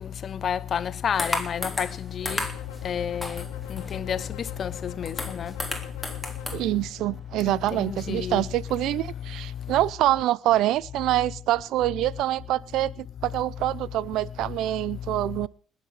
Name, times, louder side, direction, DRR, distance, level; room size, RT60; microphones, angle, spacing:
voice 1, 0.4-1.9 2.2-2.4 2.8-3.4 3.9-4.2 4.6-5.5 7.9-8.4, left 8 dB, 50° left, 0.8 m, -29 dB
sound 1, 1.1-8.2, right 2 dB, 30° right, 7.9 m, -57 dB
sound 2, 1.2-2.0 2.3-2.8 3.2-4.1 4.6-4.7 4.8-6.6, left 2 dB, 10° left, 3.4 m, -32 dB
sound 3, 2.2-6.6, left 11 dB, 90° left, 1.5 m, -42 dB
voice 2, 6.5-15.5, right 14 dB, 75° right, 0.7 m, -25 dB
20.0 x 7.5 x 6.5 m
supercardioid pair, 85°, 0 cm